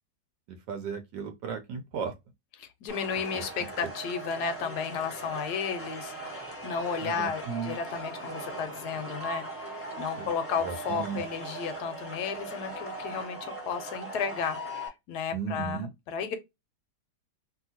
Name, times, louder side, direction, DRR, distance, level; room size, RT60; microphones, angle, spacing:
voice 1, 0.5-2.1 3.3-3.9 7.0-7.8 10.2-10.3 10.6-11.2 15.3-15.9, right 6 dB, 75° right, 1.2 m, -36 dB
voice 2, 2.6-6.1 6.6-16.4, left 6 dB, 70° left, 1.1 m, -33 dB
sound 1, 2.9-14.9, right 1 dB, 15° left, 0.5 m, -39 dB
2.8 x 2.7 x 2.7 m
omnidirectional pair, 1.9 m